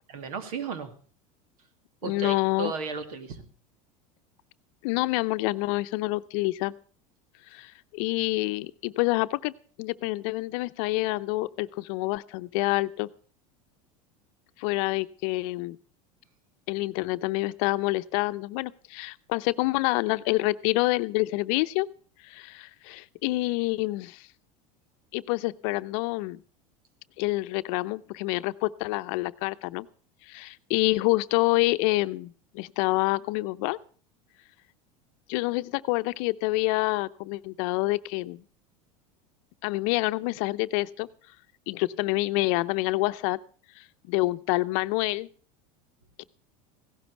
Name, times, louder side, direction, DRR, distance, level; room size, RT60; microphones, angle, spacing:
voice 1, 0.1-0.9 2.0-3.4, right 5 dB, 80° right, 9 dB, 2.2 m, -34 dB
voice 2, 2.0-2.7 4.8-6.7 7.5-13.1 14.6-15.8 16.7-21.9 22.2-24.3 25.1-26.4 27.2-29.9 30.3-33.8 35.3-38.4 39.6-41.1 41.7-43.4 43.8-45.3 46.2-46.3, left 21 dB, 65° left, 13 dB, 0.7 m, -27 dB
16.5 x 12.0 x 4.5 m, 0.43 s
supercardioid pair, 105°, 18 cm